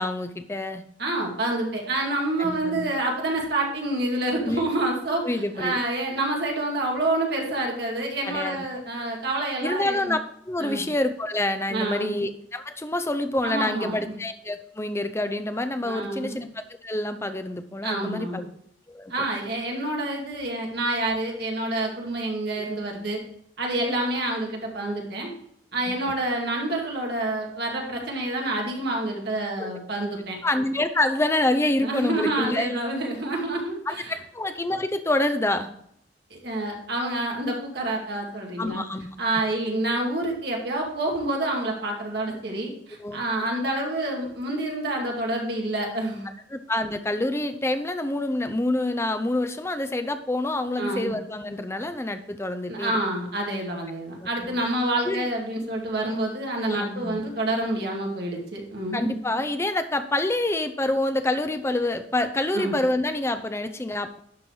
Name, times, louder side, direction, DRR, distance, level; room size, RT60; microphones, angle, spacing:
voice 1, 0.0-0.8 2.4-2.9 4.5-4.6 5.2-5.8 8.2-8.6 9.6-10.2 10.5-16.5 16.8-18.4 18.9-19.3 22.6-22.7 25.9-26.1 29.6-29.7 30.4-32.7 33.9-35.7 38.6-39.1 43.0-43.2 46.5-53.0 54.4-54.6 55.0-55.3 56.6-57.2 58.9-64.2, left 1 dB, 15° left, 8 dB, 0.5 m, -27 dB
voice 2, 1.0-10.2 10.6-10.8 11.7-12.1 13.4-14.2 15.8-16.4 17.8-18.5 19.1-23.2 23.6-25.3 25.7-30.4 31.8-34.2 36.3-38.8 39.2-46.3 50.8-51.1 52.7-59.2 62.5-62.7, right 1 dB, 60° right, -1 dB, 2.2 m, -28 dB
11.5 x 4.4 x 4.7 m, 0.73 s
head